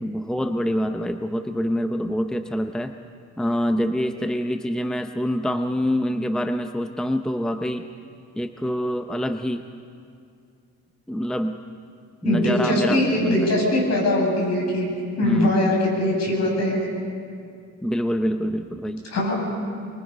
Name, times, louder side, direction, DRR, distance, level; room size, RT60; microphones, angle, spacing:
voice 1, 0.0-2.9 3.4-7.8 8.4-9.6 11.1-11.6 12.2-13.5 15.2-15.6 17.8-19.0, equal, ahead, 7 dB, 0.7 m, -25 dB
voice 2, 12.2-14.9 15.2-16.9 19.1-19.3, left 1 dB, 60° left, -1 dB, 7.3 m, -22 dB
24.0 x 23.0 x 5.4 m, 2.3 s
cardioid pair, 90°, 30 cm